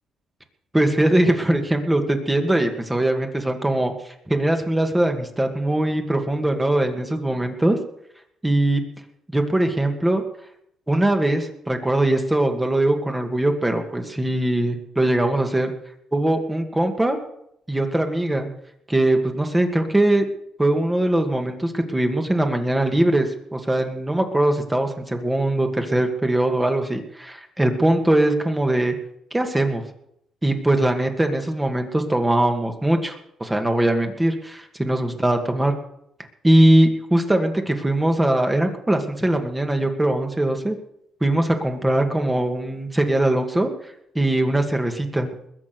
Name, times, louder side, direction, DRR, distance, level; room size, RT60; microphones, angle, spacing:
voice 1, 0.7-3.9 4.3-7.8 8.4-8.8 9.3-10.2 10.9-15.7 16.1-17.2 17.7-18.5 18.9-20.3 20.6-28.9 29.3-29.8 30.4-35.7 36.4-40.8 41.2-43.7 44.1-45.3, right 1 dB, 10° right, 4 dB, 2.3 m, -21 dB
21.0 x 7.4 x 6.2 m, 0.74 s
cardioid pair, 90°, 0 cm